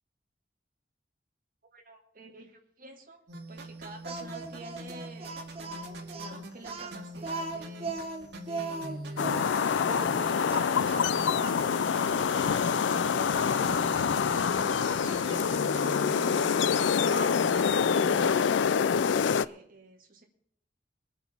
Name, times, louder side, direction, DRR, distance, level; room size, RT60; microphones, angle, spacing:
voice 1, 1.7-3.2 3.5-7.9 8.5-11.7 12.3-16.5 16.8-20.3, right 2 dB, 50° right, 2 dB, 2.1 m, -50 dB
sound 1, 3.3-18.3, right 1 dB, 70° right, 2.1 m, -42 dB
Speech, 4.0-11.6 12.2-12.4 12.9-13.8 15.2-15.6 16.7-17.5, right 3 dB, 30° right, 1.2 m, -39 dB
sound 2, 9.2-19.5, left 6 dB, 90° left, 0.4 m, -26 dB
22.5 x 8.1 x 4.3 m, 0.66 s
head